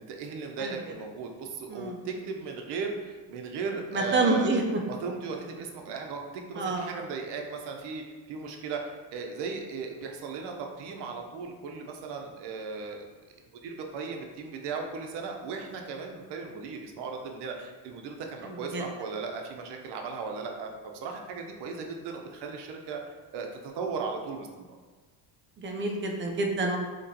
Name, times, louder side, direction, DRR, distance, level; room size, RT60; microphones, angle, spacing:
voice 1, 0.0-4.5 4.8-6.2 6.5-13.1 13.4-24.8, right 4 dB, 60° right, 2 dB, 0.7 m, -37 dB
voice 2, 3.9-4.6 6.6-6.9 18.4-18.8 25.6-26.8, right 3 dB, 25° right, 2 dB, 0.4 m, -28 dB
4.1 x 3.0 x 2.7 m, 1.3 s
cardioid pair, 125°, 46 cm